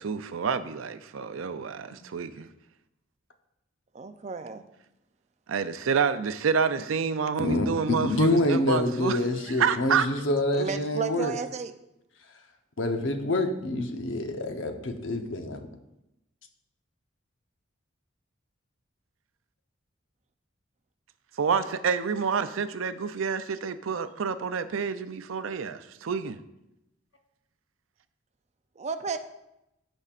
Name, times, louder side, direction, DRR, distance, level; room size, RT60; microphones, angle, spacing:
voice 1, 0.0-2.5 5.5-9.2 9.6-10.1 21.4-26.4, right 6 dB, 90° right, 0.5 m, -28 dB
voice 2, 3.9-4.6 10.5-11.7 28.8-29.2, right 5 dB, 35° right, 0.5 m, -33 dB
voice 3, 7.4-11.3 12.8-15.7, left 1 dB, 70° left, 0.9 m, -27 dB
14.0 x 5.3 x 2.5 m
head